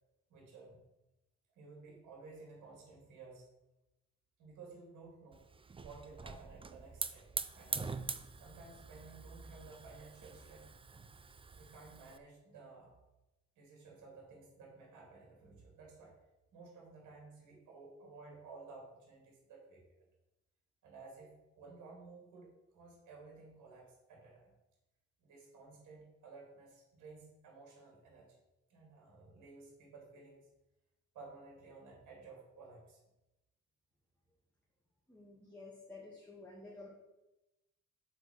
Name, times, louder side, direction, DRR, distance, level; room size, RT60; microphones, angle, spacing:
voice 1, 0.3-0.8 1.5-3.5 4.4-5.5 5.8-7.3 7.5-8.0 8.4-10.7 11.6-13.0 13.6-16.1 16.5-19.8 20.8-24.5 25.2-28.4 28.7-30.5 31.1-33.0, right 3 dB, 80° right, -1 dB, 3.1 m, -55 dB
Hiss / Fire, 5.3-12.2, right 4 dB, 20° right, 0.5 m, -44 dB
voice 2, 35.1-36.9, left 3 dB, 5° left, -5 dB, 2.1 m, -52 dB
6.7 x 4.9 x 6.5 m, 0.97 s
cardioid pair, 90°, 30 cm